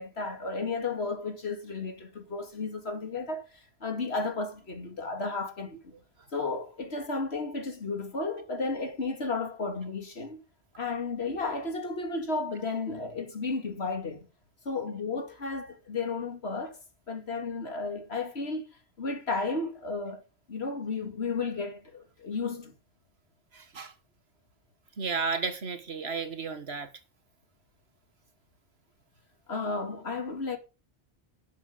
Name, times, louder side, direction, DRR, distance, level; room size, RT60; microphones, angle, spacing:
voice 1, 0.0-5.8 6.3-10.4 10.8-14.3 14.6-16.8 17.1-18.7 19.0-22.7 29.5-30.6, left 3 dB, 80° left, 2.6 m, -33 dB
voice 2, 25.0-26.9, right 5 dB, 75° right, 1.8 m, -32 dB
11.5 x 8.2 x 5.2 m
omnidirectional pair, 1.1 m